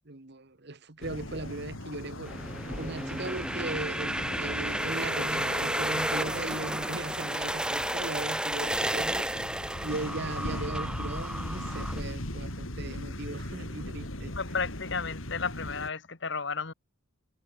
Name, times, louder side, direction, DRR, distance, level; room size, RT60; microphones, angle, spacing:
voice 1, 0.0-2.4 2.8-9.3 9.8-14.3, right 2 dB, 55° right, 1.5 m, -38 dB
sound 1, 1.0-15.9, left 1 dB, 80° left, 6.1 m, -39 dB
sound 2, 2.2-12.0, right 1 dB, 5° right, 1.7 m, -32 dB
voice 2, 14.3-16.7, left 5 dB, 60° left, 1.5 m, -33 dB
head